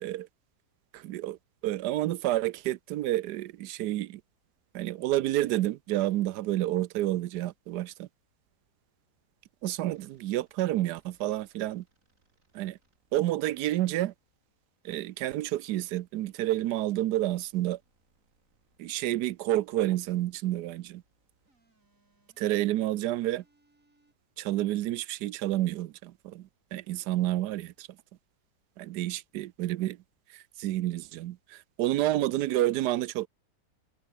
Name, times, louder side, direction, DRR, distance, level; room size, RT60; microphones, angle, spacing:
voice 1, 0.9-1.4 1.6-4.2 4.7-8.1 9.6-11.8 12.5-12.8 13.1-14.1 14.8-17.8 18.8-21.0 22.4-23.4 24.4-27.9 28.8-30.0 30.3-33.3, right 14 dB, 80° right, 1.2 m, -29 dB
sound 1, 9.9-15.4 16.7-24.1, right 2 dB, 50° right, 7.4 m, -72 dB
omnidirectional pair, 1.8 m